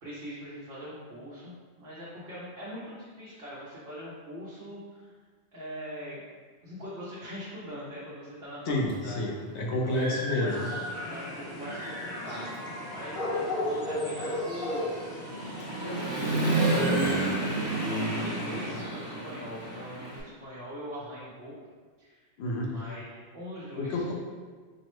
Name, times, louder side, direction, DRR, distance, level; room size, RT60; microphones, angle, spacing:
voice 1, 0.0-5.1 5.5-6.2 6.6-9.2 9.8-10.5 11.1-14.9 15.8-21.5 22.0-22.2 22.6-24.1, equal, 60° right, -8 dB, 1.0 m, -42 dB
voice 2, 8.7-10.7 22.4-22.7 23.8-24.1, left 1 dB, 80° left, -1 dB, 1.0 m, -29 dB
Human voice / Motorcycle, 8.9-9.0 9.5-11.3 11.6-20.2, right 2 dB, 15° right, 0.7 m, -32 dB
sound 1, 10.5-18.8, left 1 dB, 55° left, 1.0 m, -36 dB
5.2 x 2.1 x 3.0 m, 1.5 s
omnidirectional pair, 1.1 m